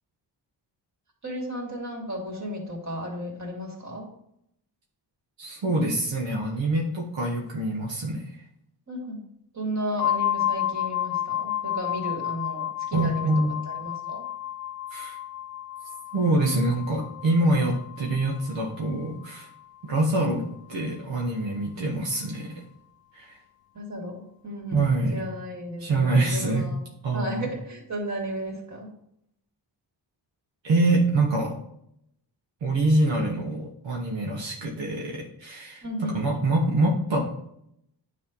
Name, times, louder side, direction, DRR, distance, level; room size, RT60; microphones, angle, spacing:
voice 1, 1.2-4.1 8.9-9.2 9.5-13.3 13.6-14.2 23.7-26.8 27.1-28.9 35.8-36.3, equal, 40° right, -2 dB, 2.8 m, -34 dB
voice 2, 5.4-8.3 12.9-13.5 14.9-15.2 16.1-19.5 19.8-20.4 20.7-22.5 23.1-23.4 24.7-25.2 25.8-26.7 27.0-27.5 30.6-31.5 32.6-37.5, right 2 dB, 85° right, -1 dB, 1.3 m, -25 dB
sound 1, 10.0-19.6, left 12 dB, 55° left, 0.5 m, -31 dB
9.7 x 3.3 x 5.3 m, 0.75 s
cardioid pair, 90°, 43 cm